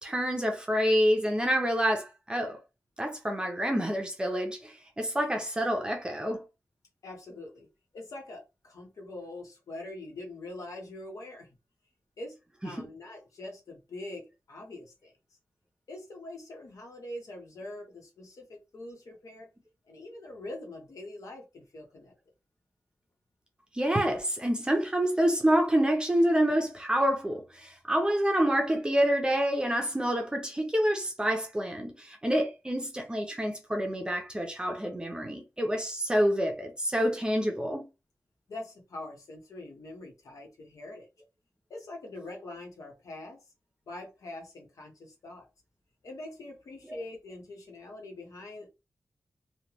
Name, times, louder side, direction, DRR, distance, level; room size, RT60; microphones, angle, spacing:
voice 1, 0.0-2.6 3.0-6.4 12.8-12.9 23.7-37.8 46.9-47.0, equal, 15° right, 0.6 m, -27 dB
voice 2, 7.0-7.7 7.9-11.5 12.2-12.4 12.6-15.1 15.9-19.5 19.9-22.1 38.5-41.1 41.7-43.4 43.9-45.5 46.0-48.7, left 2 dB, 80° left, 1.1 m, -43 dB
3.2 x 2.2 x 2.9 m
wide cardioid pair, 140°, 6 cm